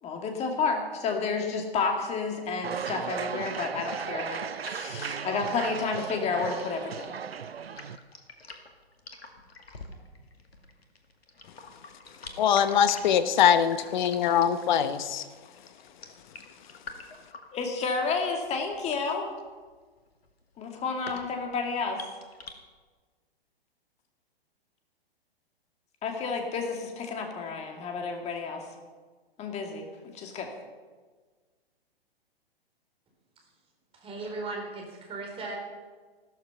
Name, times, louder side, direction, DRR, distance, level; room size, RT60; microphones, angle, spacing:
voice 1, 0.0-7.1 17.5-19.3 20.6-22.1 26.0-28.7 29.4-29.9 30.1-30.5, left 4 dB, 20° left, 3 dB, 2.4 m, -31 dB
sound 1, 2.6-8.0, right 7 dB, 75° right, 0.8 m, -36 dB
sound 2, 4.3-22.5, left 3 dB, 75° left, 2.3 m, -48 dB
voice 2, 12.4-15.3, left 8 dB, 50° left, 12 dB, 1.1 m, -23 dB
voice 3, 33.9-35.6, right 3 dB, 20° right, 1 dB, 4.1 m, -37 dB
15.0 x 13.0 x 5.7 m, 1.4 s
figure-of-eight pair, 115°, 31 cm